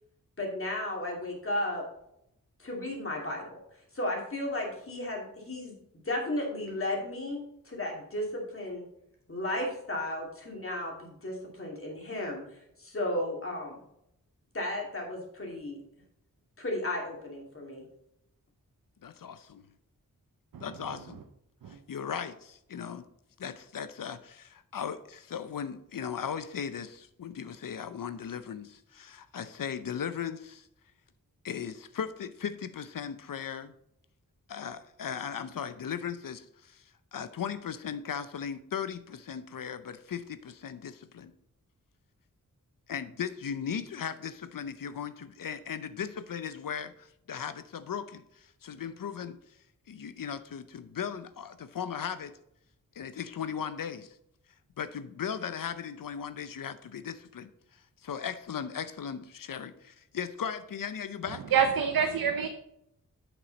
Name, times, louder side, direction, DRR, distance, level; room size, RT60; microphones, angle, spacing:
voice 1, 0.4-1.8 2.6-3.6 3.9-5.7 6.0-8.9 9.3-12.4 12.8-13.8 14.5-15.8 16.6-17.8, left 1 dB, 40° left, -1 dB, 2.6 m, -34 dB
voice 2, 19.0-19.7 20.6-21.2 21.7-23.1 23.4-30.7 31.4-33.7 34.5-36.8 37.1-41.3 42.9-49.4 49.9-52.3 53.0-54.2 54.8-61.4, left 7 dB, 70° left, 12 dB, 0.6 m, -37 dB
voice 3, 61.5-62.5, right 7 dB, 90° right, 5 dB, 0.7 m, -26 dB
8.0 x 6.2 x 4.1 m, 0.77 s
wide cardioid pair, 100°, 34 cm